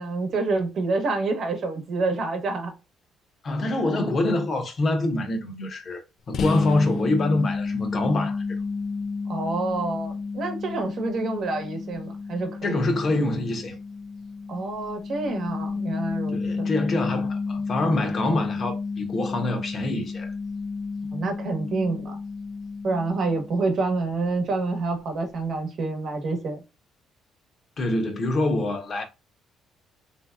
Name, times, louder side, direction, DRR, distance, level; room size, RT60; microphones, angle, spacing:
voice 1, 0.0-2.7 9.3-12.8 14.5-16.7 21.1-22.2 22.8-26.6, right 3 dB, 60° right, 1.0 m, -27 dB
voice 2, 3.4-6.0 6.3-8.4 12.6-13.8 16.3-20.3 27.8-29.0, left 2 dB, 45° left, 0.9 m, -25 dB
sound 1, 6.3-23.8, left 4 dB, 65° left, 0.4 m, -31 dB
3.2 x 2.8 x 2.3 m
cardioid pair, 90°, 0 cm